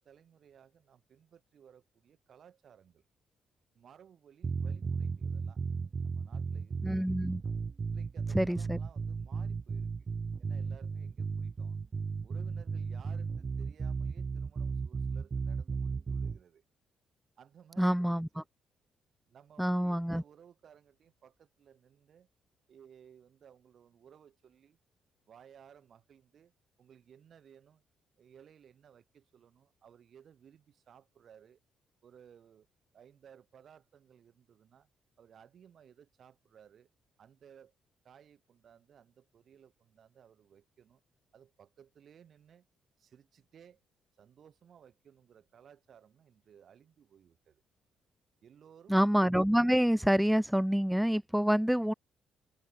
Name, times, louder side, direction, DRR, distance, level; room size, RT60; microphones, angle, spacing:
voice 1, 0.0-3.0 3.7-5.6 6.0-7.2 7.8-9.9 10.4-11.8 12.2-16.6 17.4-18.5 19.3-22.3 22.7-24.8 25.3-26.5 26.8-27.8 28.2-31.6 32.0-32.7 32.9-34.9 35.2-36.9 37.2-37.7 38.0-41.0 41.3-42.7 43.0-43.8 44.2-47.6 48.4-49.0 51.5-51.8, right 8 dB, 60° right, 5.5 m, -59 dB
sound 1, 4.4-16.4, right 5 dB, 35° right, 1.0 m, -35 dB
voice 2, 6.8-7.4 8.3-8.8 17.8-18.3 19.6-20.2 48.9-51.9, equal, ahead, 0.5 m, -27 dB
cardioid pair, 90°, 0 cm